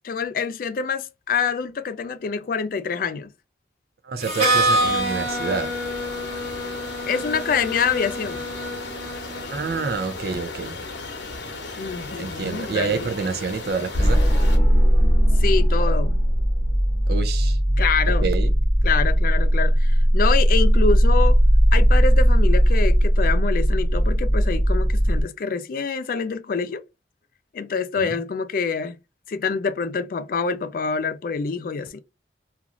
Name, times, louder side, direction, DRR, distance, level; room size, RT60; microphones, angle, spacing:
voice 1, 0.0-3.3 7.1-8.4 11.8-13.1 15.4-16.2 17.8-18.3 18.8-21.4 21.7-26.8 27.5-29.0 29.3-32.0, left 5 dB, 50° left, 0.3 m, -26 dB
voice 2, 4.0-5.7 9.5-10.8 12.2-14.2 17.1-17.6 18.2-18.5 28.0-28.2, right 4 dB, 60° right, 0.5 m, -28 dB
Harmonica, 4.2-9.9, right 1 dB, 40° right, 1.4 m, -26 dB
sound 1, 4.5-14.6, left 3 dB, 85° left, 0.8 m, -36 dB
sound 2, 13.9-25.2, equal, 25° left, 0.7 m, -18 dB
3.0 x 2.5 x 2.5 m
head